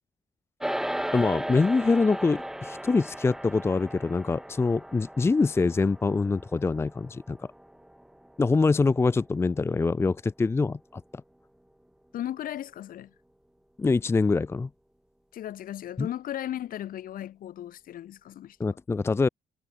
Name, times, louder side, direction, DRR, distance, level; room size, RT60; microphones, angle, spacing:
sound 1, 0.6-10.1, right 1 dB, 5° right, 1.6 m, -37 dB
voice 1, 1.1-7.5 8.4-11.0 13.8-14.7 16.0-16.1 18.6-19.3, left 4 dB, 15° left, 0.7 m, -24 dB
voice 2, 12.1-13.1 15.3-18.8, left 12 dB, 60° left, 3.7 m, -36 dB
cardioid pair, 165°, 17 cm